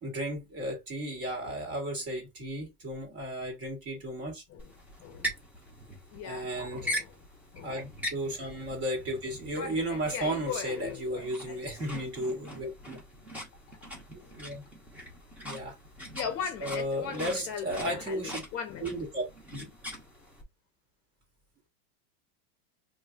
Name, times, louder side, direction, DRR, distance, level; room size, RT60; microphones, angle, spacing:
voice 1, 0.0-4.4 6.2-6.9 7.6-13.0 14.1-14.6 15.4-15.8 16.6-18.4 18.8-19.2 19.5-19.7, right 1 dB, 30° right, 1.9 m, -34 dB
sound 1, 4.6-20.4, equal, 5° right, 1.0 m, -42 dB
voice 2, 6.1-6.5 6.8-7.1 7.5-7.8 9.5-11.6 13.7-13.8 14.2-14.3 16.1-18.2 18.5-19.0 19.5-19.6, left 7 dB, 30° left, 0.8 m, -39 dB
5.2 x 2.7 x 2.3 m
supercardioid pair, 165°, 48 cm